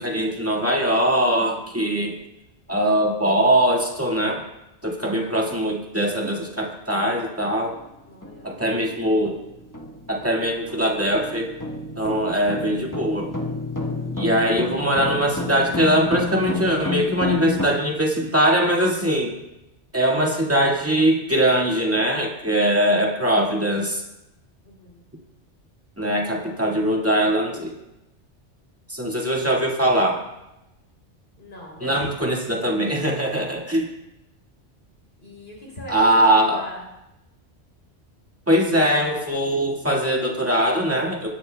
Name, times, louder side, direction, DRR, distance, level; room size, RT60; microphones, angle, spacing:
voice 1, 0.0-2.2 2.7-4.4 4.8-7.8 8.4-9.4 10.1-11.5 12.0-13.4 14.2-19.3 19.9-24.0 26.0-27.7 28.9-30.3 31.8-33.9 35.9-36.6 38.5-41.3, right 1 dB, 10° right, -1 dB, 1.8 m, -21 dB
sound 1, 7.6-7.8 8.2-17.7, left 3 dB, 15° left, 1.1 m, -31 dB
voice 2, 8.1-8.6 13.9-14.2 24.6-25.0 26.0-26.7 31.4-31.9 35.2-36.9, equal, 55° left, -3 dB, 3.5 m, -42 dB
20.5 x 10.5 x 2.2 m, 0.91 s
omnidirectional pair, 1.2 m